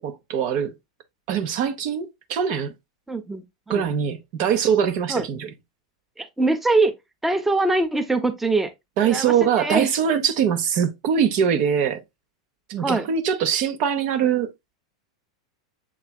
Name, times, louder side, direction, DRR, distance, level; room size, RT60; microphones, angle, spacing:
voice 1, 0.0-0.7 1.3-2.7 3.7-5.5 9.0-12.0 12.7-14.5, right 8 dB, 50° right, 0.8 m, -22 dB
voice 2, 3.1-3.9 5.1-5.3 6.2-6.9 7.2-8.7 9.0-9.9 12.8-13.1, right 2 dB, 5° right, 0.8 m, -23 dB
7.2 x 3.2 x 2.3 m
hypercardioid pair, 95°, 3 cm